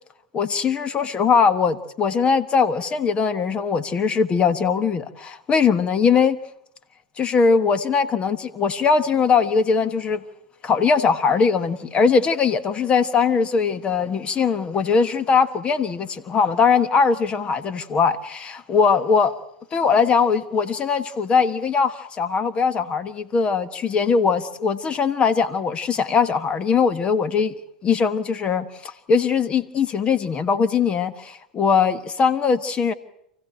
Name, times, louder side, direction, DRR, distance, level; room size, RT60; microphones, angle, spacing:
voice 1, 0.3-6.4 7.2-10.2 10.6-19.3 19.7-27.5 27.8-32.9, left 5 dB, 30° left, 13 dB, 1.4 m, -20 dB
28.0 x 16.0 x 9.0 m, 0.77 s
hypercardioid pair, 95°, 4 cm